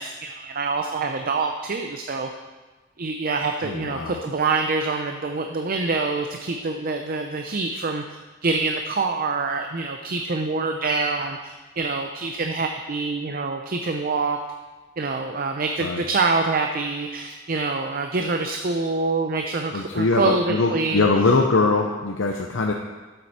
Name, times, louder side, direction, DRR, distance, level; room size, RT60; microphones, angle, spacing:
voice 1, 0.0-2.3 3.0-14.4 15.0-21.1, right 3 dB, 45° right, 4 dB, 0.6 m, -26 dB
voice 2, 3.6-4.2 15.8-16.0 19.7-22.7, left 3 dB, 75° left, 2 dB, 0.7 m, -22 dB
12.0 x 7.8 x 4.2 m, 1.3 s
head